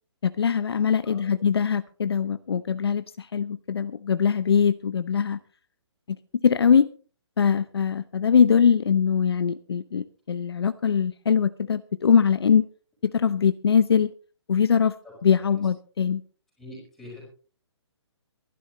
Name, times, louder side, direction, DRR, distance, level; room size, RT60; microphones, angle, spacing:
voice 1, 0.2-5.4 6.4-6.9 7.4-12.6 13.0-14.1 14.5-14.9 15.2-16.2, left 7 dB, 55° left, 13 dB, 0.7 m, -22 dB
voice 2, 16.6-17.3, left 1 dB, ahead, -4 dB, 4.8 m, -44 dB
23.0 x 11.5 x 3.1 m, 0.39 s
hypercardioid pair, 180°, 15 cm